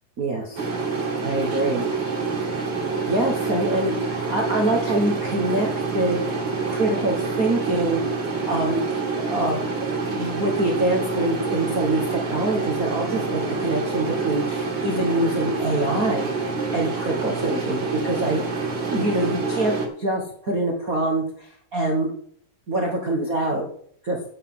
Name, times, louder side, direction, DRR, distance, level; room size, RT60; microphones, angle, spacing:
voice 1, 0.2-0.7 1.2-1.8 3.1-5.7 5.9-6.4 6.7-8.0 8.5-8.8 9.2-18.4 18.9-22.1 22.7-23.7 24.0-24.2, right 1 dB, 65° right, 0 dB, 0.8 m, -25 dB
sound 1, 0.6-19.9, right 4 dB, 40° right, 2.3 m, -27 dB
9.2 x 6.1 x 7.6 m, 0.63 s
omnidirectional pair, 3.8 m